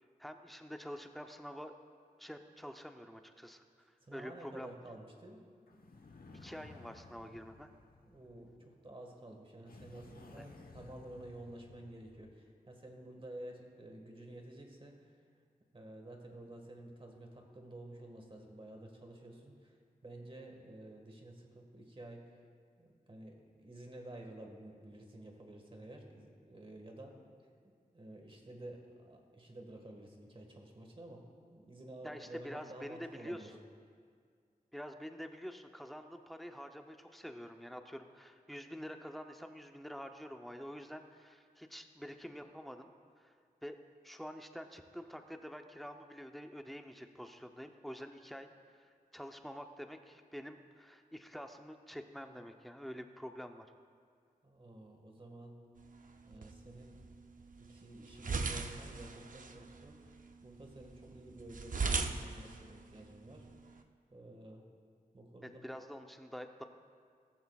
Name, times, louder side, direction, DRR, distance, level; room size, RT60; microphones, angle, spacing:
voice 1, 0.2-1.7 2.2-3.6 4.1-4.7 6.3-7.7 10.4-10.5 32.0-33.5 34.7-42.9 43.2-43.3 43.6-43.8 44.0-48.5 48.7-53.7 65.6-66.6, equal, ahead, 5 dB, 0.7 m, -47 dB
voice 2, 4.1-5.4 8.1-15.2 15.7-19.8 20.0-22.2 22.8-27.2 27.6-33.5 54.4-55.5 56.2-57.1 57.6-63.4 64.1-64.6 65.1-65.6, right 1 dB, 35° right, 2 dB, 1.7 m, -51 dB
sound 1, 5.7-8.7 9.6-12.4, left 3 dB, 70° left, 1.0 m, -56 dB
sound 2, 55.8-63.8, right 4 dB, 60° right, 0.6 m, -41 dB
16.5 x 14.0 x 2.4 m, 2.1 s
wide cardioid pair, 105°, 16 cm